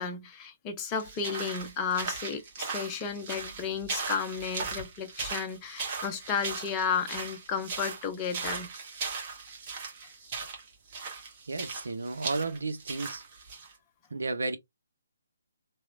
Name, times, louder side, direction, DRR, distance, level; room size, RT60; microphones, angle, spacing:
voice 1, 0.0-8.7, left 6 dB, 20° left, 0.5 m, -33 dB
sound 1, 0.9-13.7, right 4 dB, 35° right, 1.1 m, -38 dB
voice 2, 11.5-13.2 14.1-14.6, right 3 dB, 75° right, 0.6 m, -33 dB
2.9 x 2.0 x 2.5 m
figure-of-eight pair, 145°, 0 cm